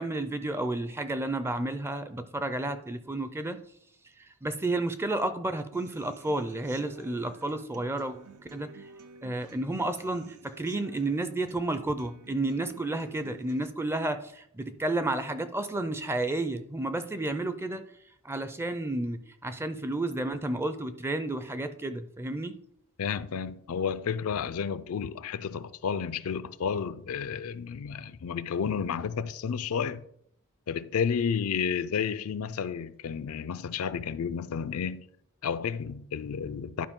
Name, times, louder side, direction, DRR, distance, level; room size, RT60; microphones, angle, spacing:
voice 1, 0.0-3.6 4.4-8.2 8.5-8.7 9.2-17.8 18.2-22.6, right 2 dB, 10° right, 0.4 m, -31 dB
Human voice / Acoustic guitar, 5.7-13.7, right 4 dB, 80° right, 0.7 m, -51 dB
voice 2, 23.0-30.0 30.7-35.1 35.4-36.9, left 7 dB, 75° left, 0.4 m, -31 dB
11.0 x 4.7 x 3.6 m
head